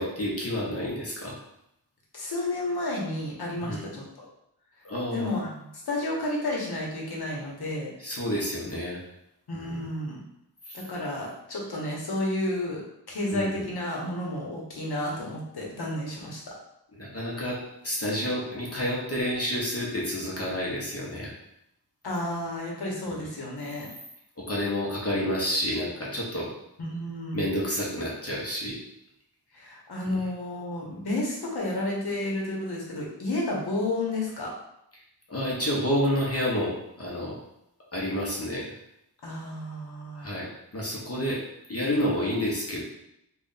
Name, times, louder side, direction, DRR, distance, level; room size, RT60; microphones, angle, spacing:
voice 1, 0.0-1.3 3.6-3.8 4.8-5.3 8.0-9.0 9.6-9.8 10.7-10.8 13.3-13.6 16.9-21.3 24.4-26.5 27.3-28.8 30.0-30.2 35.3-37.3 37.9-38.7 40.2-40.5 40.7-41.4 41.7-42.8, equal, 35° left, -4 dB, 1.0 m, -29 dB
voice 2, 2.1-4.0 5.1-7.9 9.5-10.2 10.7-12.8 13.1-16.5 22.0-23.9 26.8-27.4 29.5-34.5 39.2-40.3, left 1 dB, 65° left, -2 dB, 1.1 m, -31 dB
3.2 x 2.5 x 4.0 m, 0.80 s
wide cardioid pair, 85°, 41 cm